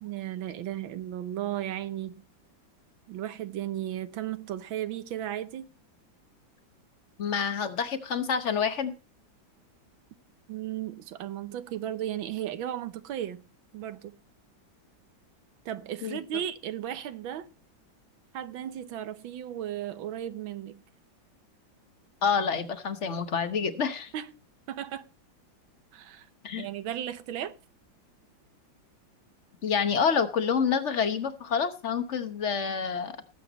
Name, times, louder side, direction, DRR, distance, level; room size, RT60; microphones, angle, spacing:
voice 1, 0.0-2.2 3.1-5.7 10.5-13.4 13.7-14.1 15.6-17.5 18.3-20.8 24.1-24.3 24.7-25.1 25.9-26.3 26.6-27.6, right 11 dB, 85° right, 1.7 m, -35 dB
voice 2, 7.2-8.9 16.0-16.2 22.2-24.1 26.4-26.7 29.6-33.2, left 6 dB, 45° left, 1.1 m, -28 dB
18.5 x 7.8 x 4.0 m
omnidirectional pair, 2.1 m